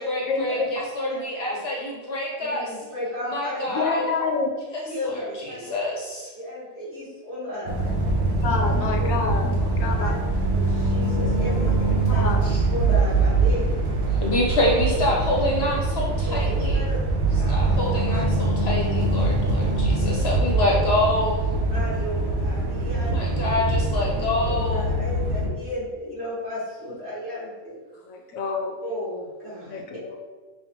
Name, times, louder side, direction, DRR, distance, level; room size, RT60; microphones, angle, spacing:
voice 1, 0.0-2.7 3.3-4.0 5.0-6.3 12.4-12.6 14.1-16.8 17.5-21.4 23.1-24.8, left 1 dB, 60° left, -3 dB, 0.8 m, -26 dB
voice 2, 2.4-4.1 4.8-5.8 6.3-8.1 9.0-9.1 9.9-10.1 10.5-12.3 12.7-13.8 16.2-17.0 17.4-17.6 17.9-18.2 19.1-19.2 20.7-20.8 21.7-23.4 24.1-27.8 28.8-30.0, left 1 dB, 50° right, -9 dB, 1.9 m, -34 dB
voice 3, 3.7-4.5 8.4-10.2 11.7-12.4 28.1-28.8 29.7-30.2, left 4 dB, 85° left, 2 dB, 1.0 m, -28 dB
sound 1, 7.7-25.5, right 2 dB, 90° right, 1.1 m, -23 dB
5.5 x 2.3 x 2.9 m, 1.3 s
omnidirectional pair, 1.4 m